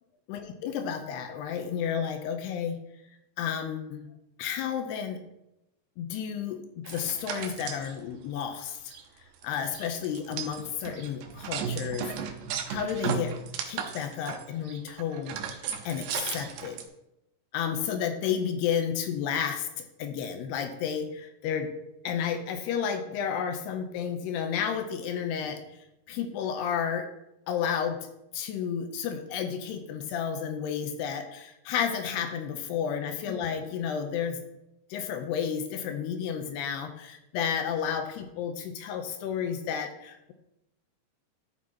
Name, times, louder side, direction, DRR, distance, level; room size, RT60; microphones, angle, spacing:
voice 1, 0.3-2.8 3.4-4.1 4.4-5.2 6.0-8.9 9.4-12.1 12.7-13.3 13.7-16.8 17.5-21.7 22.0-25.6 26.1-27.1 27.5-28.1 28.3-34.4 34.9-40.3, left 8 dB, 85° left, 6 dB, 2.7 m, -32 dB
sound 1, 6.9-7.9 8.4-8.5 8.7-9.0 9.4-16.9, right 7 dB, 80° right, 2.6 m, -35 dB
13.0 x 6.3 x 2.8 m, 0.87 s
omnidirectional pair, 4.9 m